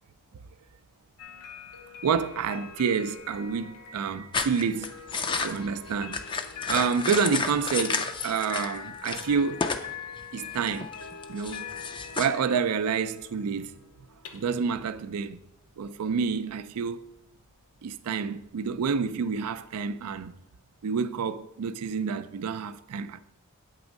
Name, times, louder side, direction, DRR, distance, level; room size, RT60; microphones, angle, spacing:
sound 1, 1.2-20.2, left 6 dB, 85° left, 0.7 m, -44 dB
voice 1, 2.0-4.9 5.4-6.2 6.7-9.7 10.3-10.9 11.3-11.7 12.1-13.7 14.3-15.4 15.8-17.0 17.8-20.4 20.8-23.2, right 6 dB, 80° right, 0.4 m, -28 dB
sound 2, 4.3-8.8 9.0-9.9 10.2-12.3, left 4 dB, 20° left, 0.4 m, -32 dB
8.2 x 3.5 x 5.1 m
head